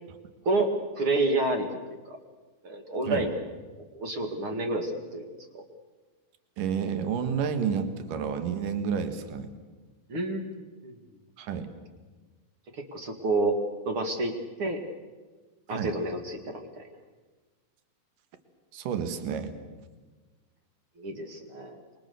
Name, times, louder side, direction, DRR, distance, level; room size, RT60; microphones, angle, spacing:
voice 1, 0.4-1.7 2.1-2.2 2.6-3.4 3.9-5.6 10.1-10.9 12.7-13.6 13.8-14.3 14.6-14.8 15.7-16.9 21.0-21.8, right 2 dB, 40° right, 4 dB, 2.4 m, -29 dB
voice 2, 6.6-9.5 11.4-11.7 15.7-16.0 18.7-19.5, right 7 dB, 65° right, 9 dB, 3.2 m, -30 dB
28.0 x 24.0 x 6.9 m, 1.3 s
omnidirectional pair, 4.4 m